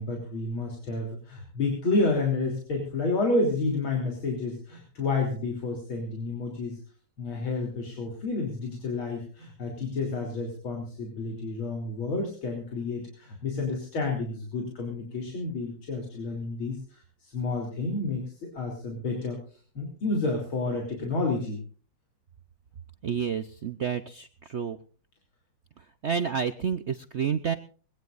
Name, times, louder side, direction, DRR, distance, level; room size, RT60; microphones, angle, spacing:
voice 1, 0.0-6.8 7.2-19.4 19.8-21.6, left 3 dB, 90° left, 1 dB, 4.1 m, -30 dB
voice 2, 23.0-24.8 26.0-27.5, right 7 dB, 70° right, 10 dB, 0.6 m, -29 dB
22.0 x 17.5 x 2.5 m, 0.41 s
omnidirectional pair, 2.2 m